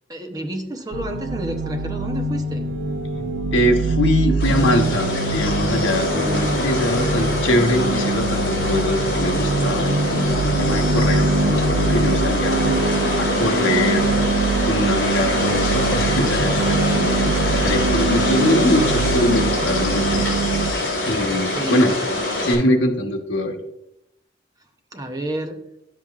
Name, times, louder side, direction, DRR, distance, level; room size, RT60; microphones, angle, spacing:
voice 1, 0.1-2.7 21.5-22.0 24.9-25.6, right 1 dB, 20° right, 4 dB, 0.8 m, -30 dB
sound 1, 0.9-20.7, right 3 dB, 85° right, 0.5 m, -23 dB
voice 2, 3.5-14.1 14.6-17.2 17.6-20.3 21.1-21.9 22.4-23.6, left 1 dB, 90° left, 4 dB, 1.1 m, -23 dB
sound 2, 4.4-22.5, left 2 dB, 65° left, 3.1 m, -24 dB
10.5 x 7.2 x 2.4 m, 0.81 s
head